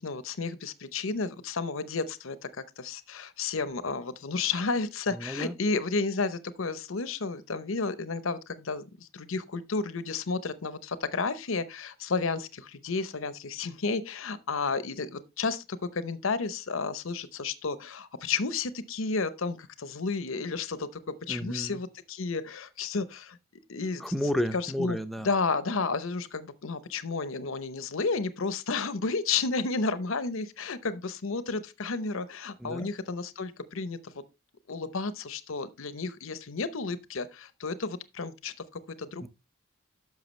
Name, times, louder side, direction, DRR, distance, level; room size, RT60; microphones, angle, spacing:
voice 1, 0.0-21.0 21.3-23.4 23.7-24.1 24.5-25.0 25.2-34.1 34.7-39.3, left 4 dB, 70° left, 0.8 m, -32 dB
voice 2, 5.1-5.6 21.3-21.8 24.0-25.3 32.6-32.9 39.2-39.3, equal, ahead, 0.6 m, -32 dB
10.5 x 6.5 x 3.2 m
head